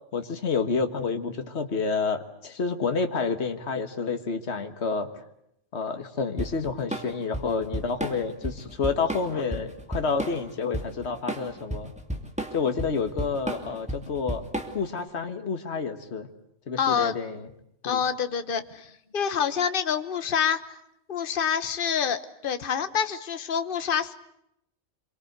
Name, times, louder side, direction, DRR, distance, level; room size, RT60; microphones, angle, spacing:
voice 1, 0.1-5.1 5.7-11.9 12.5-14.4 14.7-16.3 16.7-17.5 17.8-18.0, left 5 dB, 65° left, 7 dB, 1.9 m, -29 dB
Drum kit / Drum, 6.4-15.0, right 1 dB, 5° right, 2.7 m, -33 dB
voice 2, 16.8-17.2 17.8-20.8 21.1-24.1, left 7 dB, 50° left, 11 dB, 1.3 m, -27 dB
27.0 x 24.0 x 8.1 m, 0.78 s
omnidirectional pair, 1.2 m